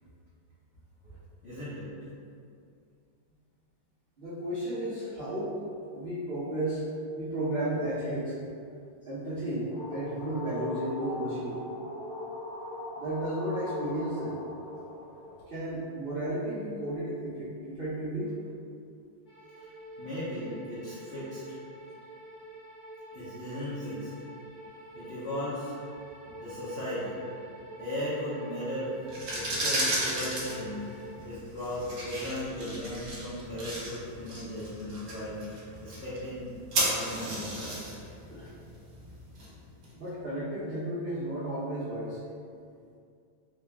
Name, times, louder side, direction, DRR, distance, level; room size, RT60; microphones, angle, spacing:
voice 1, 1.4-1.9 20.0-21.4 23.1-24.1 24.9-25.7 26.4-27.2 27.8-29.0 29.3-30.9 31.2-36.5 36.8-37.8, left 1 dB, 85° left, -11 dB, 0.5 m, -36 dB
voice 2, 4.2-5.6 5.9-6.8 7.2-8.3 9.0-11.6 12.9-14.4 15.5-18.3 32.6-32.7 38.3-38.5 39.9-42.2, right 1 dB, 70° right, -12 dB, 0.5 m, -33 dB
sound 1, 9.3-15.4, left 2 dB, 60° left, 1.1 m, -39 dB
sound 2, 19.3-31.1, right 1 dB, 45° left, 0.6 m, -47 dB
sound 3, 29.0-39.9, right 1 dB, 55° right, 1.2 m, -35 dB
3.8 x 2.3 x 3.3 m, 2.4 s
omnidirectional pair, 2.2 m